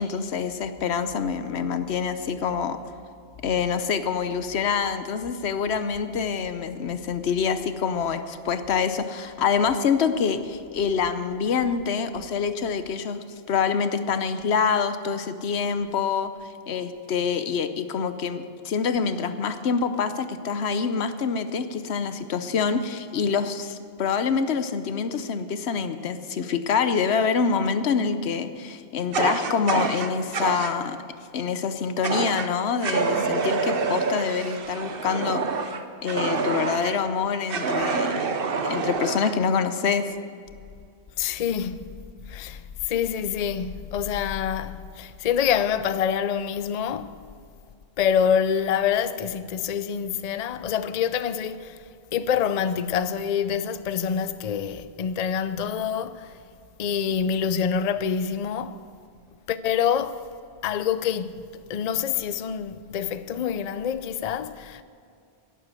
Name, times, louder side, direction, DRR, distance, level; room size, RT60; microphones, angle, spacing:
voice 1, 0.0-2.8 3.4-16.3 16.7-31.0 31.3-35.4 36.0-38.3 38.6-40.1, left 6 dB, 90° left, 1.1 m, -26 dB
Fire, 29.1-30.7 32.0-32.5 32.8-37.0 37.5-39.4, right 4 dB, 65° right, 1.0 m, -27 dB
voice 2, 41.2-41.8 42.3-47.1 48.0-51.8 52.1-56.3 56.8-58.8 59.5-60.2 60.6-61.4 61.7-64.8, left 8 dB, 50° left, 0.5 m, -26 dB
11.5 x 11.0 x 7.6 m
omnidirectional pair, 1.1 m